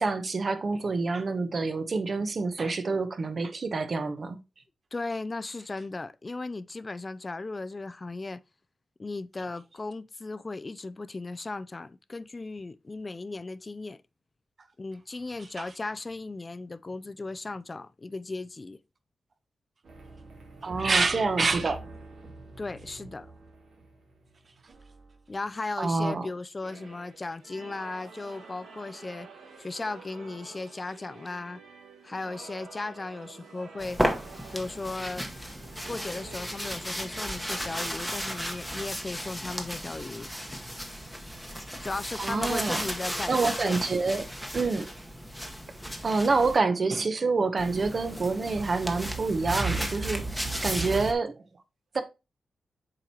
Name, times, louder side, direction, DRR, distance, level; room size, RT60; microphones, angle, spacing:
voice 1, 0.0-4.4 15.6-15.7 20.6-21.8 25.8-26.3 42.2-42.8 43.3-44.2 44.5-44.9 46.0-51.4 51.9-52.0, right 3 dB, 45° right, 0.9 m, -27 dB
voice 2, 4.9-8.4 9.0-14.0 14.8-18.8 22.6-23.3 25.3-29.3 29.6-31.6 32.0-34.0 34.5-35.3 35.9-40.3 41.8-43.8, left 3 dB, 25° left, 0.4 m, -36 dB
sound 1, 19.8-24.8, right 2 dB, 70° right, 2.7 m, -45 dB
sound 2, 26.6-37.9, right 4 dB, 90° right, 1.5 m, -49 dB
sound 3, 33.8-46.6 47.6-51.1, equal, ahead, 1.0 m, -34 dB
7.6 x 4.5 x 2.8 m
wide cardioid pair, 115°, 0 cm